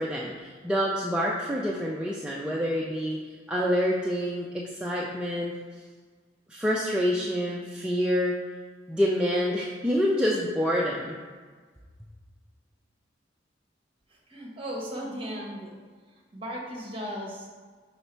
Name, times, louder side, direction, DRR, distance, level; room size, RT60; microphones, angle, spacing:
voice 1, 0.0-5.5 6.5-8.4 8.9-11.1, equal, 5° right, -4 dB, 0.4 m, -27 dB
voice 2, 14.3-15.7 16.3-17.6, equal, 30° right, -2 dB, 1.1 m, -36 dB
5.5 x 4.1 x 4.4 m, 1.5 s
head